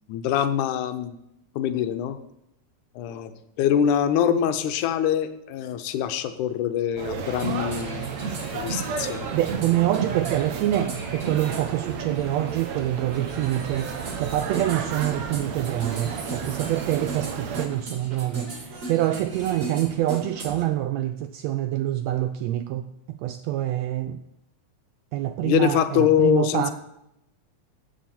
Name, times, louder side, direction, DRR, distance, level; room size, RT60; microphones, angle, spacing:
voice 1, 0.1-1.1 1.6-2.2 3.0-3.3 3.6-8.1 8.5-9.3 25.4-26.7, left 9 dB, 80° left, 2.2 m, -24 dB
sound 1, 7.0-17.7, right 6 dB, 70° right, 2.0 m, -33 dB
sound 2, 7.2-20.6, right 3 dB, 40° right, 1.1 m, -36 dB
voice 2, 9.3-24.2 25.1-26.7, right 13 dB, 90° right, 1.5 m, -26 dB
15.5 x 8.2 x 4.3 m
omnidirectional pair, 3.6 m